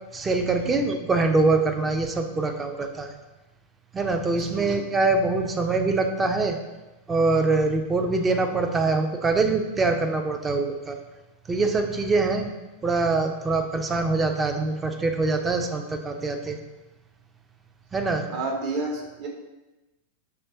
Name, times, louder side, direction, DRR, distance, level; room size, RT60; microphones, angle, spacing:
voice 1, 0.1-3.1 3.9-6.6 7.1-11.0 11.5-12.5 12.8-16.6 17.9-18.3, right 3 dB, 15° right, 5 dB, 0.4 m, -24 dB
voice 2, 4.3-4.8 18.3-19.3, right 3 dB, 45° right, 0 dB, 0.9 m, -31 dB
5.7 x 3.2 x 2.6 m, 1.1 s
figure-of-eight pair, 90°, 0 cm